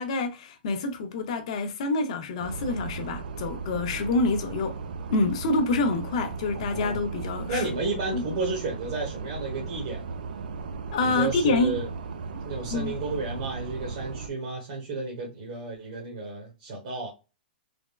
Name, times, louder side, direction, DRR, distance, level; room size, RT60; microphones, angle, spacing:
voice 1, 0.0-4.8 5.1-7.6 8.1-8.2 10.9-11.8 12.7-13.0, left 3 dB, 40° left, 0.5 m, -27 dB
sound 1, 2.4-14.3, right 4 dB, 60° right, 0.4 m, -36 dB
voice 2, 7.5-10.1 11.0-11.9 12.4-17.1, right 3 dB, 45° right, 1.0 m, -32 dB
3.4 x 2.1 x 2.2 m
hypercardioid pair, 180°, 5 cm